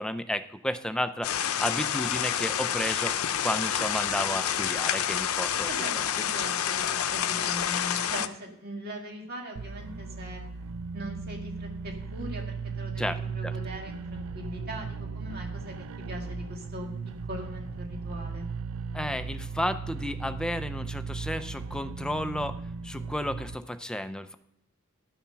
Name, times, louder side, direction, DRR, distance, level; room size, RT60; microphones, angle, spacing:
voice 1, 0.0-3.1 3.4-5.7 13.0-13.5 18.9-22.6 22.8-24.4, left 1 dB, 5° left, 10 dB, 0.5 m, -32 dB
sound 1, 1.2-8.3, left 9 dB, 90° left, 0.6 m, -28 dB
voice 2, 5.6-10.4 10.9-15.8 16.1-16.9 17.2-18.4, equal, 45° right, 1 dB, 2.3 m, -40 dB
sound 2, 9.6-23.6, right 5 dB, 85° right, 0.4 m, -37 dB
12.0 x 7.2 x 5.7 m, 0.79 s
head